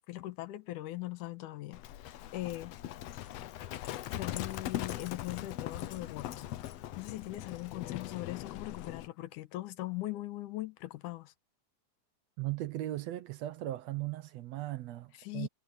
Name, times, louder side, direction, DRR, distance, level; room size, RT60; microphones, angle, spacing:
voice 1, 0.1-2.7 3.1-3.2 4.2-6.5 7.0-11.3 15.2-15.5, left 16 dB, 90° left, 2.5 m, -40 dB
Livestock farm animals working animals, 1.7-9.1, left 13 dB, 70° left, 1.7 m, -40 dB
voice 2, 12.4-15.5, right 15 dB, 70° right, 1.8 m, -37 dB
omnidirectional pair, 3.5 m